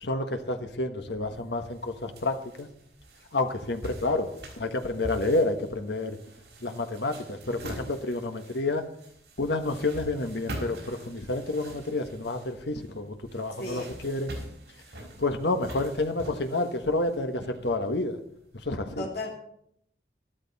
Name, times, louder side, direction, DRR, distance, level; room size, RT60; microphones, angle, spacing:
voice 1, 0.0-2.7 3.3-6.2 6.6-8.8 9.4-14.3 15.2-18.2 18.6-19.1, left 2 dB, 85° left, 6 dB, 1.4 m, -29 dB
sound 1, 1.0-18.5, right 1 dB, 75° right, 5.2 m, -45 dB
voice 2, 13.6-14.0 19.0-19.3, left 2 dB, 65° left, -3 dB, 2.7 m, -34 dB
13.0 x 13.0 x 4.2 m, 0.70 s
head